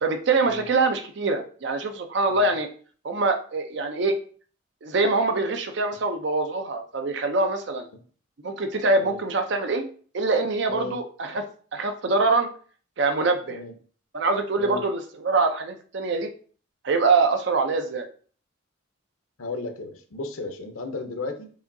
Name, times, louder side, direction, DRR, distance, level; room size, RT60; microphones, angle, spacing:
voice 1, 0.0-2.7 3.0-4.2 4.8-7.9 8.4-9.9 10.1-11.4 11.7-12.5 13.0-13.6 14.1-16.3 16.8-18.1, right 3 dB, 55° right, 6 dB, 0.5 m, -24 dB
voice 2, 19.4-21.5, left 3 dB, 90° left, 7 dB, 0.7 m, -34 dB
4.8 x 2.7 x 2.6 m, 0.43 s
head